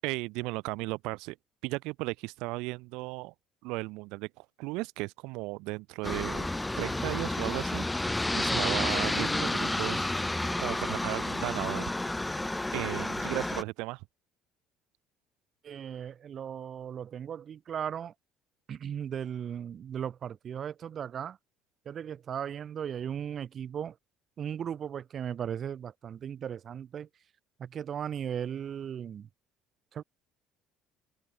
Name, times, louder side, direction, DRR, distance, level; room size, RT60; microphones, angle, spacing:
voice 1, 0.0-1.4 1.6-3.3 3.6-6.5 6.8-10.3 10.6-11.9 12.7-14.1, right 24 dB, 80° right, 3.9 m, -35 dB
Aircraft, 6.0-13.6, left 2 dB, 5° left, 1.2 m, -31 dB
voice 2, 8.5-8.8 15.6-18.1 18.7-21.4 21.9-23.9 24.4-27.1 27.6-29.3 29.9-30.0, right 8 dB, 30° right, 3.7 m, -37 dB
cardioid pair, 165°, 0 cm